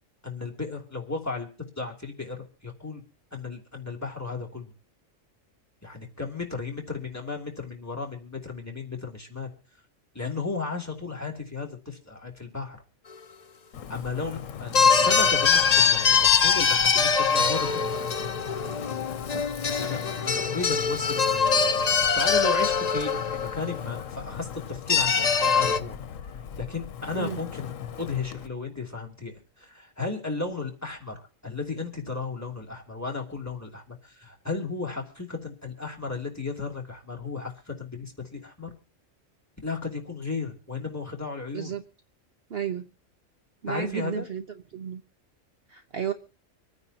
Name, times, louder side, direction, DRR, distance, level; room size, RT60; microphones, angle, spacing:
voice 1, 0.2-1.5 1.8-3.0 3.3-4.7 5.8-9.5 10.1-12.8 13.9-18.1 19.6-26.0 26.6-27.7 28.0-38.7 39.6-41.7 43.7-44.3, left 4 dB, 10° left, 0 dB, 3.0 m, -34 dB
Wind, 13.7-28.5, left 8 dB, 85° left, 1.2 m, -39 dB
sound 1, 14.7-24.0 24.9-25.8, left 6 dB, 40° left, 0.7 m, -23 dB
voice 2, 42.5-42.9 43.6-44.5 44.7-45.0 45.7-46.1, right 8 dB, 55° right, 8 dB, 1.0 m, -32 dB
26.5 x 9.7 x 2.9 m, 0.38 s
omnidirectional pair, 1.3 m